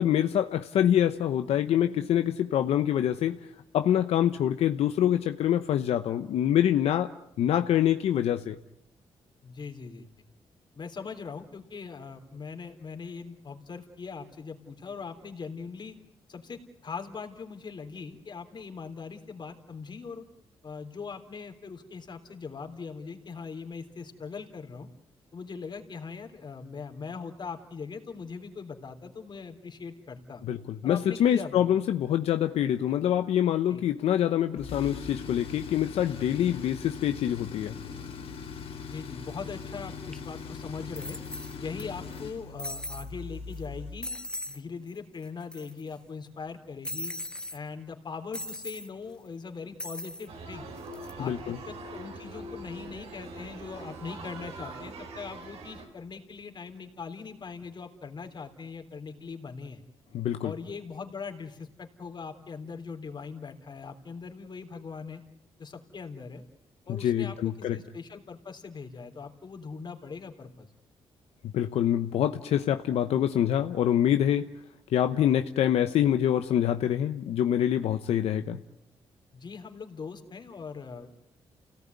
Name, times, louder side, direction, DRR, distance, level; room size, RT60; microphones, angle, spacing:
voice 1, 0.0-3.4 3.7-7.1 7.4-8.6 30.4-37.8 51.2-51.6 60.1-60.5 66.9-67.8 71.5-74.5 74.9-78.6, left 10 dB, 85° left, 8 dB, 0.9 m, -25 dB
voice 2, 9.4-10.1 10.8-16.0 16.3-20.2 20.6-24.9 25.3-30.4 30.8-31.6 33.7-33.8 38.9-41.2 41.6-44.1 44.5-47.1 47.5-50.7 51.2-59.8 60.4-65.2 65.6-66.4 66.9-70.7 79.3-81.2, left 5 dB, 45° left, 6 dB, 3.7 m, -41 dB
Tools, 34.6-44.0, left 5 dB, 70° left, 3.1 m, -40 dB
sound 1, 40.1-40.2 41.0-41.8 42.1-42.2 42.6-43.1 43.5-43.7 44.0-44.6 44.9-45.0 45.2-45.9 46.8-47.6 48.3-48.9 49.8-50.3 50.8-51.1, left 1 dB, 10° left, 1.3 m, -38 dB
sound 2, 50.3-55.9, right 2 dB, 80° right, 5.4 m, -42 dB
29.0 x 18.0 x 9.6 m, 0.80 s
cardioid pair, 80°, 10 cm